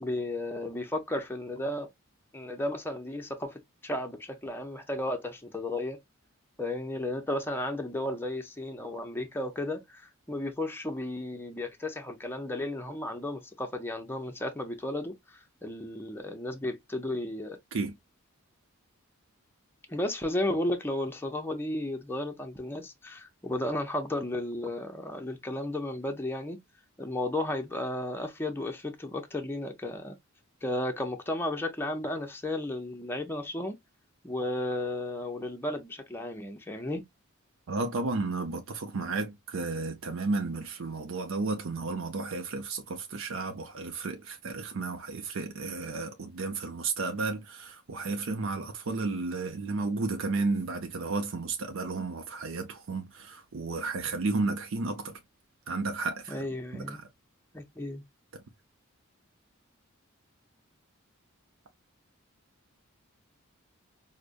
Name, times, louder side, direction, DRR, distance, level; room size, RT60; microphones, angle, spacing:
voice 1, 0.0-1.9 2.3-6.0 6.6-17.6 19.9-26.6 27.0-30.2 30.6-33.8 34.2-37.0 56.3-57.0 57.5-58.0, left 1 dB, 10° left, 0.6 m, -34 dB
voice 2, 37.7-55.2 55.7-56.5 56.7-57.1, right 3 dB, 70° right, 0.6 m, -33 dB
4.8 x 2.1 x 2.4 m
head